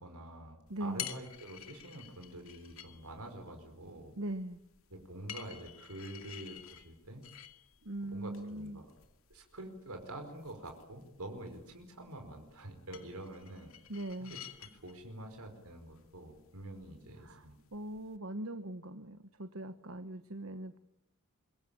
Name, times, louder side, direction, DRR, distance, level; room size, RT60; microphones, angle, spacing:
voice 1, 0.0-4.1 4.9-7.2 8.0-8.9 9.3-13.7 14.2-14.4 14.8-17.6, right 1 dB, 80° right, 4 dB, 5.0 m, -47 dB
sound 1, 0.7-18.2, left 10 dB, 65° left, 2.3 m, -52 dB
voice 2, 0.7-1.1 4.2-4.6 7.8-8.8 13.9-14.4 17.2-20.8, right 1 dB, 60° right, 10 dB, 1.3 m, -41 dB
25.5 x 22.5 x 8.9 m, 0.81 s
head